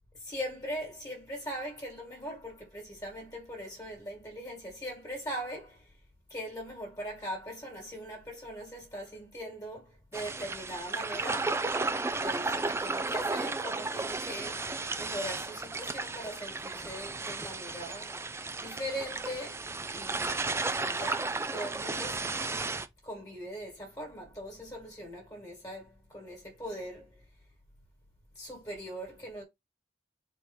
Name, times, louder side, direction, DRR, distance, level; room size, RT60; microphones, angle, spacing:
voice 1, 0.2-5.9 6.3-11.7 12.2-20.4 20.8-22.4 23.0-27.2 28.4-29.4, equal, 20° left, 1.9 m, -41 dB
sound 1, 10.1-22.9, right 3 dB, 15° right, 0.4 m, -34 dB
4.3 x 3.1 x 3.6 m
head